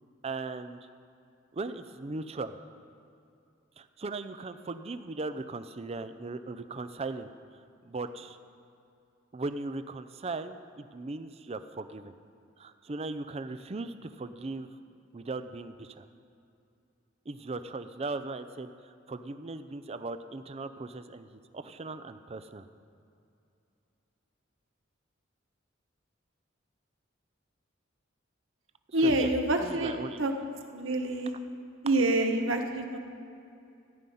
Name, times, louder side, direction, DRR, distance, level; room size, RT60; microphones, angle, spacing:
voice 1, 0.2-0.8 1.5-2.6 3.8-7.3 7.8-8.4 9.3-12.1 12.6-14.7 15.1-16.0 17.3-18.7 19.1-21.3 21.5-22.7 29.0-29.3 29.6-30.2, right 3 dB, 30° right, 11 dB, 0.5 m, -38 dB
voice 2, 28.9-30.3 30.7-31.3 31.8-33.0, right 1 dB, 85° right, 5 dB, 1.1 m, -27 dB
14.5 x 5.5 x 9.2 m, 2.6 s
head